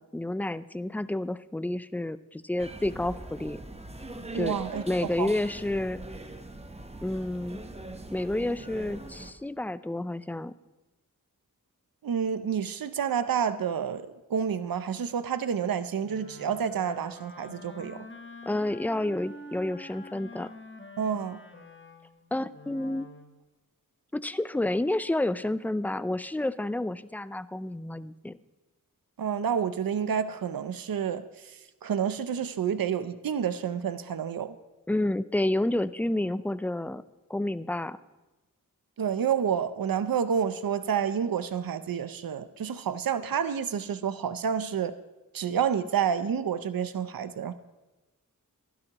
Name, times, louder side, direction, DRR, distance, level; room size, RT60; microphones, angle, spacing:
voice 1, 0.0-3.6 4.3-4.5 4.9-6.0 7.0-7.6 8.1-10.5 18.5-20.5 22.3-23.1 24.1-28.4 34.9-37.0 37.3-38.0, left 1 dB, 5° left, 15 dB, 0.3 m, -30 dB
sound 1, 2.6-9.3, right 1 dB, 20° right, 0.9 m, -42 dB
voice 2, 4.3-4.8 5.2-5.3 12.0-18.0 21.0-21.4 29.2-31.2 31.8-34.6 39.0-44.9 45.3-47.5, right 7 dB, 80° right, 12 dB, 0.5 m, -29 dB
Wind instrument woodwind instrument, 16.0-23.4, left 1 dB, 35° left, 1.1 m, -46 dB
15.0 x 12.0 x 2.9 m, 1.1 s
wide cardioid pair, 40°, 34 cm